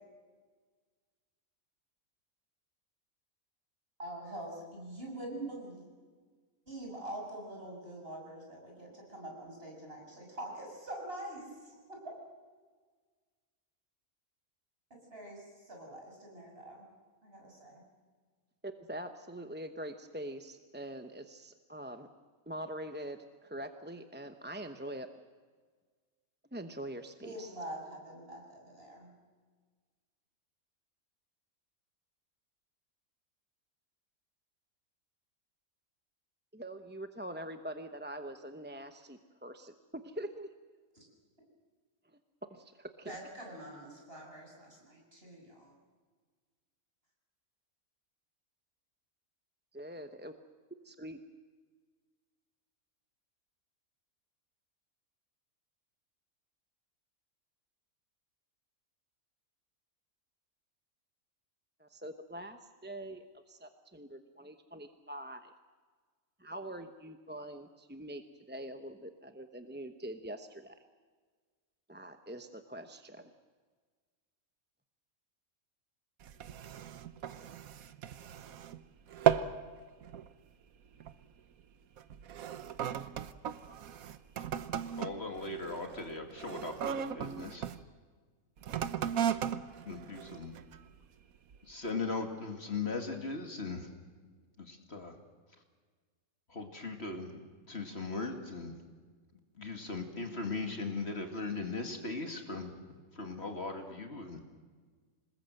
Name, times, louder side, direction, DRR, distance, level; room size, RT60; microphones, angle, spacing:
voice 1, 4.0-5.9 6.7-11.8 15.1-16.8 17.2-17.8 27.2-29.1 43.1-45.7, right 1 dB, 40° right, 0 dB, 7.3 m, -45 dB
voice 2, 18.6-22.1 22.5-25.1 26.5-27.5 36.5-40.5 42.5-43.1 49.7-50.3 50.8-51.2 61.8-65.5 66.4-68.2 68.5-70.8 71.9-73.3, right 1 dB, 10° right, 7 dB, 0.7 m, -44 dB
sound 1, 76.2-78.8 79.1-79.6 80.0-80.3 81.0-81.2 82.0-87.8 88.6-90.9 91.5-91.6, right 8 dB, 80° right, 1.3 m, -36 dB
voice 3, 85.0-87.7 89.9-90.6 91.6-93.9 94.6-95.2 96.5-97.4 97.7-98.8 99.5-102.8 103.1-104.4, left 3 dB, 50° left, 4 dB, 2.5 m, -38 dB
26.5 x 20.5 x 7.8 m, 1.5 s
omnidirectional pair, 1.5 m